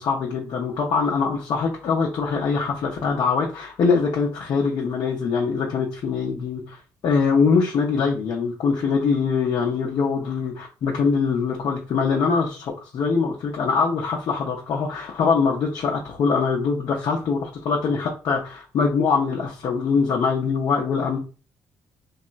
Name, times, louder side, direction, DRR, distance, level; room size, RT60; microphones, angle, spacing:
voice 1, 0.0-10.5 10.8-21.2, left 5 dB, 60° left, -1 dB, 0.6 m, -23 dB
2.9 x 2.3 x 2.4 m, 0.35 s
hypercardioid pair, 50°, 8 cm